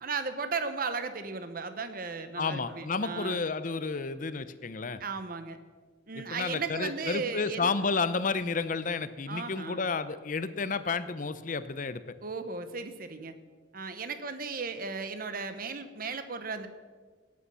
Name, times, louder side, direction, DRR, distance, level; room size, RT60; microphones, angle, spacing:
voice 1, 0.0-3.4 5.0-5.6 6.1-7.7 9.3-9.8 12.2-13.3 13.7-16.7, right 4 dB, 50° right, 10 dB, 1.1 m, -36 dB
voice 2, 2.4-5.0 6.1-12.0, left 4 dB, 45° left, 13 dB, 0.7 m, -31 dB
sound 1, 2.6-3.1 6.5-7.0 7.7-8.0, right 1 dB, 80° right, 1.3 m, -50 dB
17.5 x 8.6 x 5.6 m, 1.5 s
head